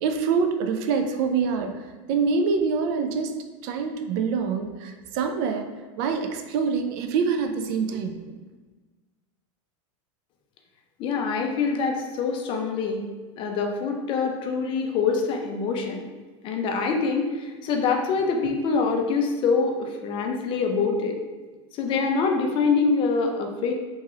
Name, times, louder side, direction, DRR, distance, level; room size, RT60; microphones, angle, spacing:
voice 1, 0.0-3.3 3.6-5.7 6.0-8.4, right 5 dB, 50° right, 6 dB, 0.4 m, -25 dB
voice 2, 11.0-13.0 13.4-16.1 16.4-21.2 21.7-23.7, left 4 dB, 30° left, 3 dB, 0.4 m, -25 dB
2.9 x 2.3 x 3.0 m, 1.3 s
supercardioid pair, 135°, 17 cm